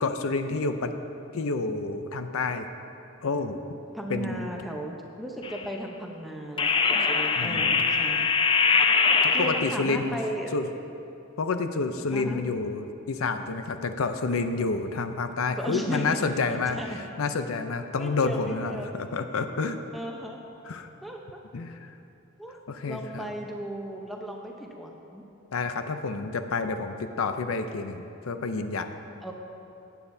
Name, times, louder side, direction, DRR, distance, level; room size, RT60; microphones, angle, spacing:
voice 1, 0.0-0.9 1.3-2.7 3.2-3.6 4.1-4.5 7.4-7.8 9.2-10.2 10.5-10.7 11.4-16.8 17.2-19.8 20.7-20.9 21.5-21.9 22.7-23.3 25.5-28.9, left 4 dB, 80° left, 8 dB, 0.6 m, -29 dB
voice 2, 3.9-8.3 9.3-10.5 12.1-12.4 15.6-16.2 16.5-17.0 18.0-18.9 19.9-20.4 21.0-21.2 22.4-22.5 22.9-25.2 29.2-29.3, right 1 dB, ahead, 0 dB, 0.8 m, -36 dB
sound 1, 5.4-5.7 6.6-9.9, left 5 dB, 25° left, 0.3 m, -23 dB
15.5 x 9.3 x 2.7 m, 2.7 s
head